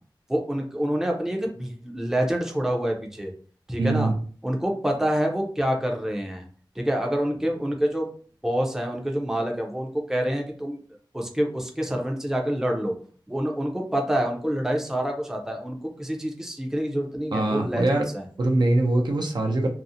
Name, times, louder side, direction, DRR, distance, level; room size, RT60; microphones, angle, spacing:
voice 1, 0.3-3.3 3.7-4.1 4.4-6.4 6.8-8.1 8.4-10.8 11.1-13.0 13.3-18.3, equal, 5° right, 1 dB, 0.5 m, -27 dB
voice 2, 3.8-4.1 17.3-18.0 18.4-19.7, right 2 dB, 60° right, 2 dB, 0.5 m, -22 dB
2.7 x 2.0 x 2.5 m, 0.42 s
wide cardioid pair, 80°, 8 cm